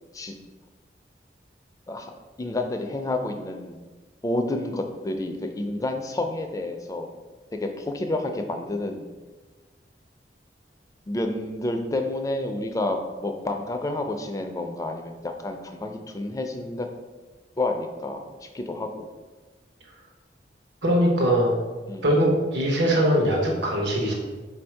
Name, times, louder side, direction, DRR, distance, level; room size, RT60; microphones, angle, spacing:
voice 1, 2.4-3.8 4.2-7.1 7.5-9.0 11.1-16.9 17.6-19.1 21.9-22.1, left 2 dB, 20° left, 5 dB, 0.3 m, -29 dB
voice 2, 20.8-21.5 22.0-24.1, equal, 85° right, 0 dB, 0.9 m, -21 dB
4.0 x 2.6 x 4.4 m, 1.3 s
head